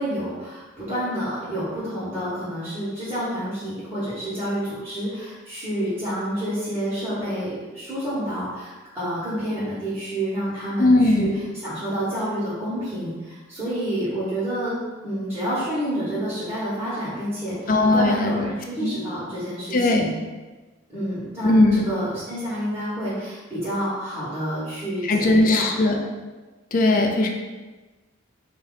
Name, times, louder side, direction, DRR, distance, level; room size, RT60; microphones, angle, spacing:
voice 1, 0.0-14.7 15.0-20.1 20.9-25.9 26.7-27.1, equal, 10° right, -15 dB, 1.4 m, -29 dB
voice 2, 10.8-11.3 17.7-18.5 18.8-18.9 19.7-20.1 21.4-21.9 25.0-26.0 26.7-27.3, left 2 dB, 40° left, 3 dB, 0.5 m, -19 dB
4.4 x 2.8 x 4.0 m, 1.2 s
head